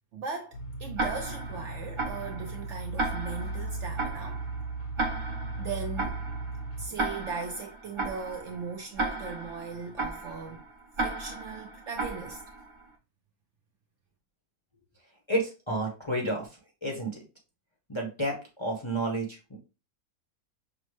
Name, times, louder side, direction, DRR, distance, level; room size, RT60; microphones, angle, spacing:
voice 1, 0.1-4.4 5.6-6.2 6.8-10.6 11.0-12.7, right 5 dB, 65° right, 0.7 m, -38 dB
sound 1, 0.5-6.9, right 2 dB, 80° left, 1.4 m, -37 dB
Tick-tock, 1.0-12.8, right 3 dB, 30° right, 0.6 m, -35 dB
voice 2, 15.3-16.5 16.8-17.1 17.9-19.6, right 1 dB, 25° left, 0.6 m, -30 dB
5.9 x 2.1 x 3.1 m
omnidirectional pair, 1.6 m